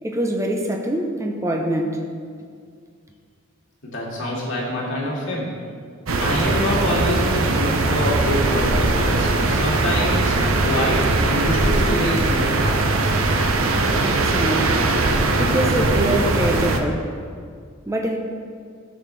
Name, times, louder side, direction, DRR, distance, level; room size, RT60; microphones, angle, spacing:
voice 1, 0.0-2.0 14.0-14.9 15.4-17.1 17.9-18.2, right 1 dB, 15° right, 1 dB, 0.8 m, -24 dB
voice 2, 3.8-5.5 6.2-13.0, left 1 dB, 60° left, -4 dB, 2.3 m, -26 dB
sound 1, 6.1-16.8, right 2 dB, 70° right, 0.8 m, -20 dB
13.5 x 7.2 x 3.4 m, 2.1 s
head